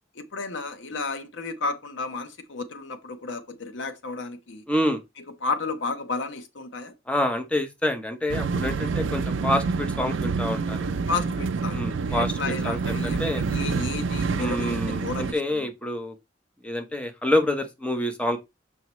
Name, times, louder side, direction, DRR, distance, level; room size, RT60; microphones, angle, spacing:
voice 1, 0.2-4.6 5.4-6.9 11.1-11.8 12.1-15.7, left 3 dB, 75° left, 0.9 m, -32 dB
voice 2, 4.7-5.0 7.1-10.9 11.7-13.4 14.4-16.1 16.6-18.4, left 1 dB, 5° left, 0.9 m, -27 dB
sound 1, 8.3-15.3, right 4 dB, 85° right, 0.5 m, -27 dB
7.0 x 4.6 x 3.1 m
head